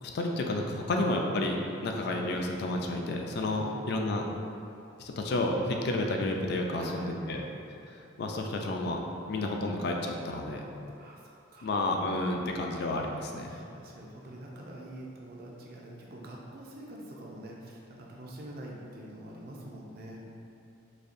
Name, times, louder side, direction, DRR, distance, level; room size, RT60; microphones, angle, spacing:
voice 1, 0.0-1.6 1.8-4.3 5.0-7.4 7.9-10.6 11.6-13.6, left 2 dB, 55° left, 2 dB, 0.3 m, -31 dB
voice 2, 3.5-3.8 6.7-7.5 11.0-11.7 13.5-20.2, right 1 dB, 50° right, -2 dB, 0.5 m, -45 dB
4.1 x 2.7 x 2.5 m, 2.7 s
head